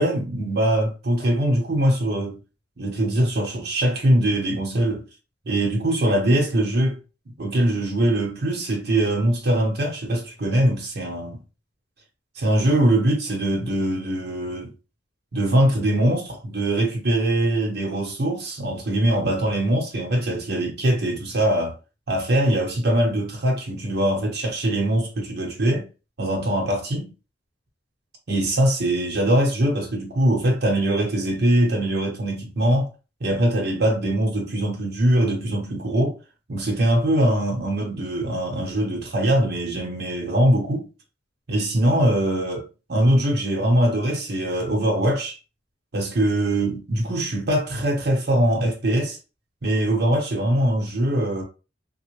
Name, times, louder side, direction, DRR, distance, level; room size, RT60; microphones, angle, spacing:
voice 1, 0.0-2.4 2.8-5.0 5.4-7.0 7.4-11.4 12.4-14.7 15.3-21.8 22.1-25.9 26.2-27.1 28.3-32.9 33.2-36.2 36.5-40.8 41.5-45.4 45.9-49.2 49.6-51.4, right 1 dB, 60° right, 1.0 m, -22 dB
3.3 x 2.3 x 3.2 m
head